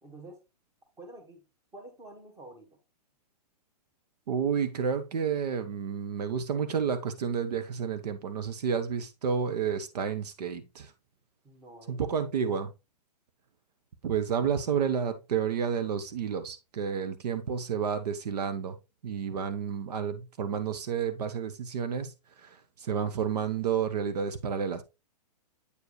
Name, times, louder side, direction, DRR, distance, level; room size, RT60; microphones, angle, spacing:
voice 1, 0.0-0.4 1.0-1.4 1.7-2.8 11.4-12.1, right 2 dB, 15° right, 1.4 m, -48 dB
voice 2, 4.3-10.9 11.9-12.7 14.0-18.8 19.0-22.1 22.4-24.8, right 7 dB, 70° right, 0.9 m, -30 dB
8.4 x 4.6 x 3.1 m
hypercardioid pair, 150°, 21 cm